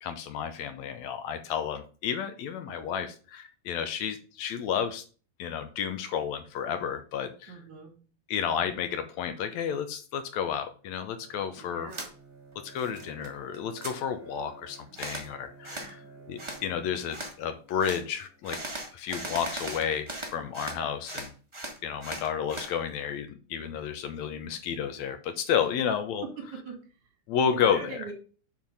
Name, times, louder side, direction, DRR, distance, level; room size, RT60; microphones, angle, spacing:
voice 1, 0.0-5.0 5.4-7.5 8.3-11.9 12.6-16.0 16.3-18.6 18.9-21.3 21.8-26.2 27.3-28.0, left 8 dB, 75° left, 9 dB, 2.0 m, -31 dB
voice 2, 7.5-7.9 11.6-12.1 15.7-16.2 26.2-26.8 27.6-28.1, right 4 dB, 70° right, 3 dB, 3.6 m, -42 dB
Bowed string instrument, 10.8-18.6, right 3 dB, 15° left, 1.1 m, -52 dB
sound 1, 11.9-12.1 12.5-13.3 13.5-13.9 14.9-15.3 15.6-15.9 16.4-16.6 17.1-17.3 17.8-18.0 18.4-20.8 21.0-22.7, right 1 dB, 25° right, 0.7 m, -38 dB
7.5 x 4.5 x 5.4 m, 0.38 s
omnidirectional pair, 3.4 m